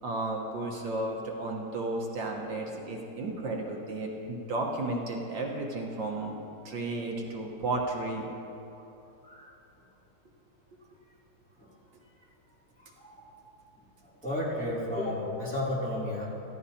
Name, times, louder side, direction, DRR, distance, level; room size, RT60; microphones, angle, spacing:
voice 1, 0.0-6.4 6.7-8.3, right 2 dB, 65° right, -1 dB, 1.9 m, -33 dB
voice 2, 14.2-16.3, left 1 dB, 5° left, -9 dB, 3.0 m, -32 dB
17.0 x 14.5 x 2.9 m, 2.9 s
omnidirectional pair, 2.2 m